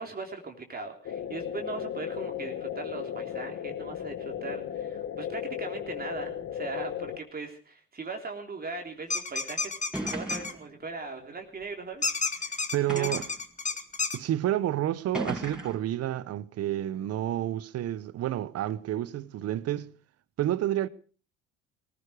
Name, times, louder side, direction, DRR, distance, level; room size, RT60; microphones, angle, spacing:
voice 1, 0.0-9.6 10.0-12.7 12.9-13.1, right 3 dB, 30° right, 3.5 m, -39 dB
sound 1, 1.0-7.2, left 9 dB, 50° left, 1.8 m, -35 dB
sound 2, 9.1-10.5 12.0-14.2, left 4 dB, 25° left, 2.0 m, -30 dB
sound 3, 9.9-10.7 11.6-11.7 12.9-13.4 14.3-14.4 15.1-15.9, right 1 dB, 5° right, 5.4 m, -36 dB
voice 2, 12.7-13.2 14.1-19.9 20.4-20.9, right 13 dB, 55° right, 1.0 m, -29 dB
19.0 x 15.5 x 5.0 m
supercardioid pair, 80°, 30 cm